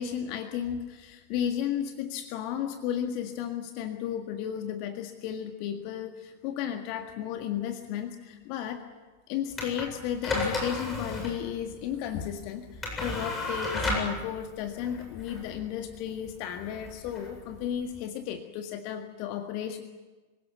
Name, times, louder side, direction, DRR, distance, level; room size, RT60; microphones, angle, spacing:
voice 1, 0.0-8.8 9.3-19.8, left 9 dB, 45° left, 6 dB, 1.7 m, -34 dB
sound 1, 9.5-18.0, left 2 dB, 15° left, 8.0 m, -34 dB
25.5 x 17.0 x 9.3 m, 1.2 s
figure-of-eight pair, 90°, 0 cm